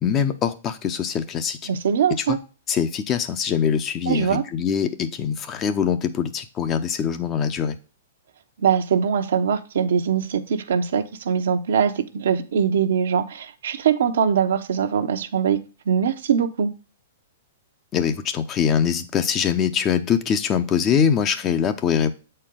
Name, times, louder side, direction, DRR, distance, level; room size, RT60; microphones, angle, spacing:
voice 1, 0.0-1.6 2.2-2.4 2.7-7.7 17.9-22.1, left 7 dB, 30° left, 9 dB, 0.7 m, -23 dB
voice 2, 1.7-2.4 4.1-4.4 8.6-15.6 15.9-16.7, right 7 dB, 75° right, 7 dB, 0.9 m, -22 dB
7.5 x 4.4 x 3.7 m, 0.34 s
hypercardioid pair, 130°, 0 cm